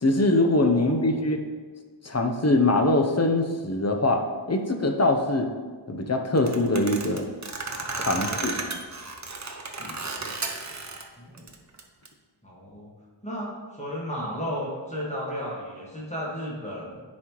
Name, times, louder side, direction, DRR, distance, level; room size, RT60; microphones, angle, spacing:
voice 1, 0.0-1.4 2.0-5.5 5.9-7.2 7.9-8.6, left 2 dB, 35° left, 4 dB, 0.7 m, -23 dB
voice 2, 0.7-1.2 8.1-8.8 9.8-10.0 11.2-11.5 12.4-12.9 13.2-17.0, equal, 15° left, -5 dB, 1.6 m, -34 dB
sound 1, 6.4-11.0 11.4-12.1, right 3 dB, 40° right, 0.7 m, -33 dB
9.8 x 4.2 x 3.0 m, 1.5 s
wide cardioid pair, 55°, 45 cm